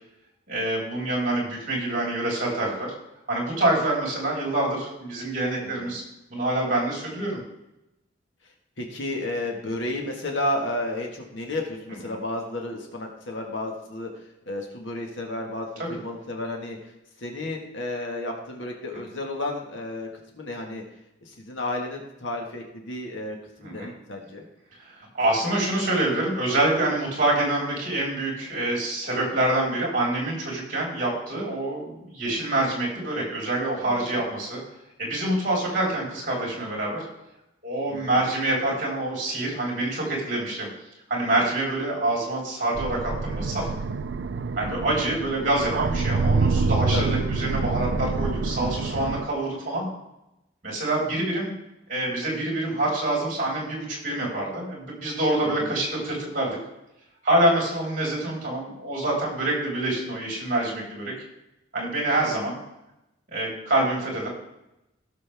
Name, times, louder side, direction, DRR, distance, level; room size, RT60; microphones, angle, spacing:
voice 1, 0.5-2.9 3.3-6.0 6.3-7.4 15.8-15.9 23.6-23.9 25.1-34.6 35.0-37.0 37.6-40.7 41.1-43.7 44.6-49.9 50.6-51.5 51.9-56.6 57.2-61.1 61.7-62.6 63.3-64.3, right 1 dB, 45° right, -3 dB, 4.4 m, -26 dB
voice 2, 8.8-14.1 14.5-16.8 17.2-20.1 20.3-20.8 21.3-24.5 33.8-34.1 37.9-38.0 46.9-47.2 55.6-55.7, left 1 dB, 75° left, 1 dB, 1.7 m, -32 dB
sound 1, 42.7-49.2, right 4 dB, 65° right, 0.5 m, -26 dB
17.0 x 6.7 x 3.5 m, 0.89 s
head